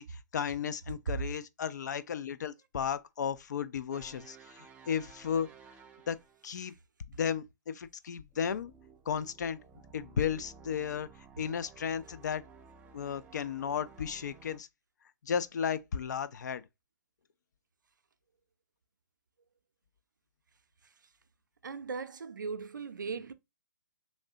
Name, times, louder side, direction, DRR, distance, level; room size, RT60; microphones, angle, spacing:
voice 1, 0.0-5.5 6.1-6.7 7.1-8.7 9.1-9.6 9.9-11.1 11.4-12.4 12.9-14.7 15.2-16.6, left 7 dB, 65° left, 0.4 m, -34 dB
sound 1, 3.9-6.6 8.3-14.6, right 5 dB, 10° right, 0.3 m, -55 dB
voice 2, 21.6-23.3, right 5 dB, 85° right, 0.5 m, -39 dB
3.2 x 2.6 x 2.8 m
hypercardioid pair, 135°, 10 cm